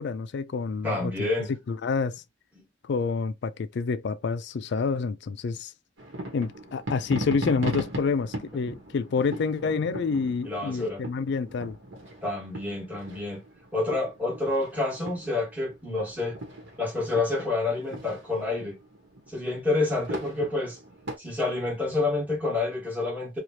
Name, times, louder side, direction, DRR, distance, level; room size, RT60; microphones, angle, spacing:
voice 1, 0.0-1.3 1.7-2.2 2.9-5.7 6.3-11.8, left 5 dB, 60° left, 0.4 m, -28 dB
voice 2, 0.8-1.5 10.4-11.0 12.2-13.4 13.7-16.4 16.8-18.7 19.3-20.8 21.2-23.4, left 2 dB, 10° right, 1.3 m, -28 dB
sound 1, 6.0-21.2, right 1 dB, 75° right, 1.1 m, -39 dB
3.1 x 2.4 x 2.7 m
head